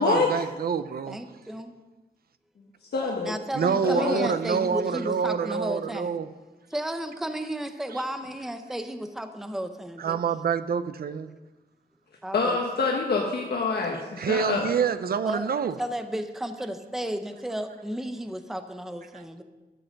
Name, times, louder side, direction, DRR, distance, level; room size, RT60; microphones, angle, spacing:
voice 1, 0.0-1.2 3.5-6.3 10.0-11.3 14.2-15.8, right 6 dB, 65° right, 13 dB, 0.6 m, -27 dB
voice 2, 1.1-1.8 3.2-6.2 6.7-10.2 12.2-12.6 15.2-15.5 15.8-19.4, right 1 dB, ahead, 8 dB, 0.6 m, -33 dB
voice 3, 2.9-3.3 3.8-4.3 12.3-14.7, left 4 dB, 75° left, 0 dB, 1.3 m, -26 dB
12.5 x 7.6 x 6.4 m, 1.2 s
wide cardioid pair, 175°, 17 cm